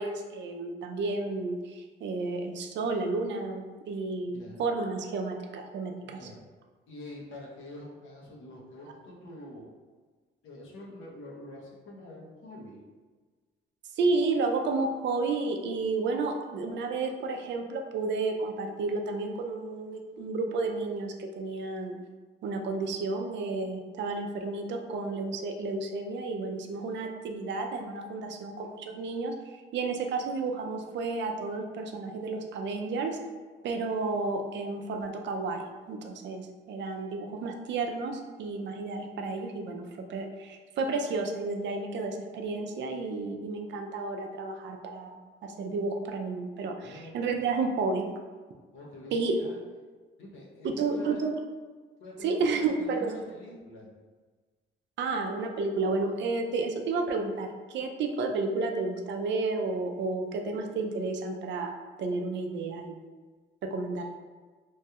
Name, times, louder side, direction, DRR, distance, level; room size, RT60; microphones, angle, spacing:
voice 1, 0.0-6.2 13.9-22.0 22.4-33.2 33.6-48.1 49.1-49.4 50.6-51.3 52.2-53.2 55.0-61.7 62.0-63.0 63.6-64.0, right 3 dB, 65° right, 3 dB, 0.4 m, -31 dB
voice 2, 6.0-6.4 6.9-9.7 10.4-12.8 46.8-47.5 48.7-49.6 50.2-51.3 52.0-53.9 63.9-64.0, left 1 dB, 75° left, -3 dB, 0.8 m, -46 dB
3.1 x 2.3 x 2.8 m, 1.4 s
cardioid pair, 90°, 20 cm